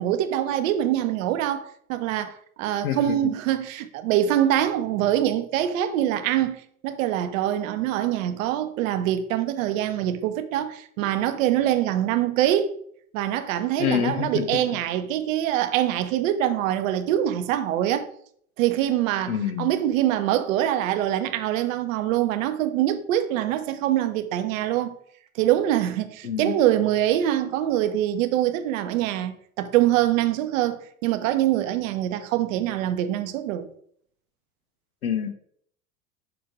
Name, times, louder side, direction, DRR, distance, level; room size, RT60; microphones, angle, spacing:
voice 1, 0.0-12.7 13.1-18.1 18.6-24.9 25.3-33.7, right 12 dB, 65° right, 0.8 m, -24 dB
voice 2, 2.8-3.3 13.8-14.5 19.3-19.7 26.2-26.5 35.0-35.3, left 9 dB, 85° left, 0.8 m, -26 dB
6.1 x 3.3 x 4.7 m
hypercardioid pair, 80°, 42 cm